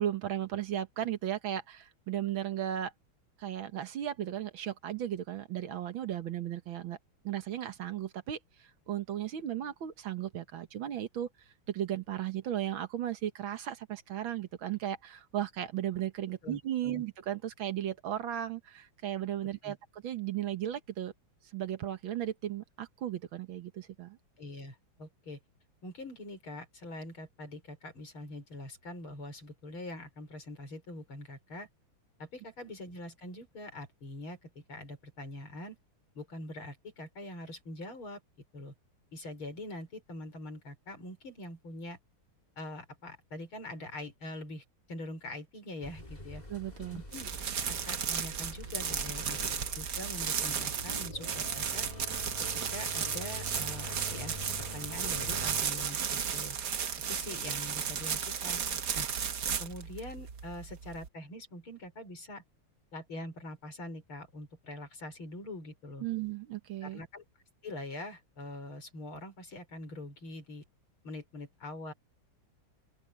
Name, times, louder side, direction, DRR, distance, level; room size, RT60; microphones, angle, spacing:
voice 1, 0.0-2.9 3.4-7.0 7.2-8.4 8.9-11.3 11.7-19.8 20.0-21.1 21.5-24.2 46.5-47.0 66.0-67.0, right 11 dB, 70° right, 2.0 m, -35 dB
voice 2, 16.4-17.0 19.6-19.8 24.4-25.4 25.8-31.7 32.2-35.8 36.1-38.2 38.5-38.7 39.1-42.0 42.6-46.4 46.9-47.3 47.7-49.4 49.8-51.9 52.4-56.6 57.1-58.6 58.9-59.1 59.6-62.4 62.9-66.1 66.8-67.2 67.6-70.6 71.0-71.9, left 1 dB, 80° left, 6.6 m, -44 dB
sound 1, 45.8-55.6, left 2 dB, 20° left, 2.7 m, -46 dB
sound 2, 47.1-61.1, right 7 dB, 55° right, 1.8 m, -34 dB
open air
omnidirectional pair, 2.3 m